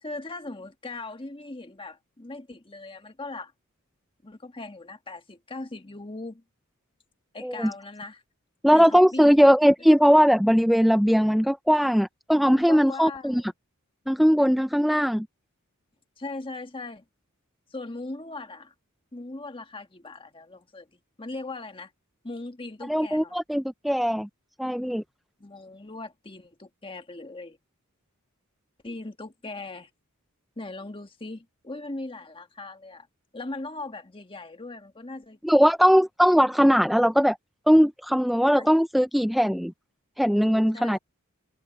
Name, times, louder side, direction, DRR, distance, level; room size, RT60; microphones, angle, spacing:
voice 1, 0.0-3.5 4.2-6.4 7.3-8.2 8.7-9.5 12.5-13.4 16.2-17.0 17.7-18.7 19.1-21.9 22.2-23.4 25.4-27.6 28.8-29.9 30.6-33.1 33.3-35.4 38.6-38.7 40.7-41.0, left 2 dB, 25° left, 1.5 m, -39 dB
voice 2, 8.6-13.4 14.1-15.3 22.9-24.3 24.6-25.0 35.4-37.4 37.7-39.7 40.2-41.0, equal, ahead, 0.3 m, -20 dB
head